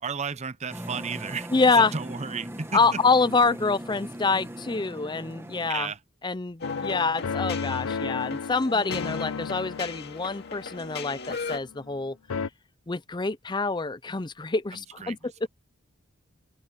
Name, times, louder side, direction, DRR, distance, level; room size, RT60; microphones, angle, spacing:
voice 1, 0.0-1.5 1.7-3.0 5.7-6.0 14.7-15.2, right 5 dB, 30° right, 0.7 m, -33 dB
sound 1, 0.7-5.7, right 1 dB, 10° right, 1.1 m, -39 dB
voice 2, 1.5-1.9 2.7-5.9 6.2-12.2 12.9-15.5, left 4 dB, 20° left, 0.6 m, -26 dB
sound 2, 6.6-12.0 12.3-12.5, left 5 dB, 85° left, 0.5 m, -34 dB
sound 3, 6.6-11.6, left 5 dB, 50° left, 2.2 m, -38 dB
open air
head